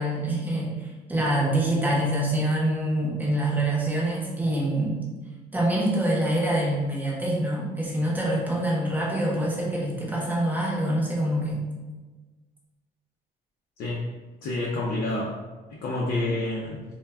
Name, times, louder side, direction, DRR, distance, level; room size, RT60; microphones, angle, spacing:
voice 1, 0.0-5.0 5.5-11.6, right 1 dB, 10° right, -5 dB, 0.8 m, -25 dB
voice 2, 13.8-16.8, left 2 dB, 60° left, -3 dB, 0.5 m, -29 dB
2.2 x 2.1 x 3.4 m, 1.2 s
cardioid pair, 110°, 17 cm